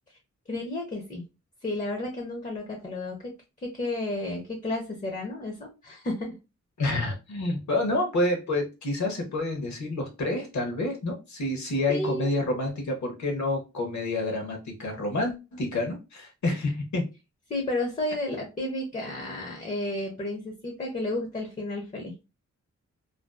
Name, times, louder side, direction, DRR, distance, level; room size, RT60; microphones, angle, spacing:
voice 1, 0.5-1.2 1.6-3.3 3.6-6.3 11.9-12.3 17.5-22.1, left 1 dB, 25° left, 1 dB, 0.5 m, -32 dB
voice 2, 6.8-17.1, left 2 dB, 65° left, 3 dB, 0.7 m, -28 dB
2.5 x 2.3 x 2.3 m, 0.27 s
wide cardioid pair, 180°, 30 cm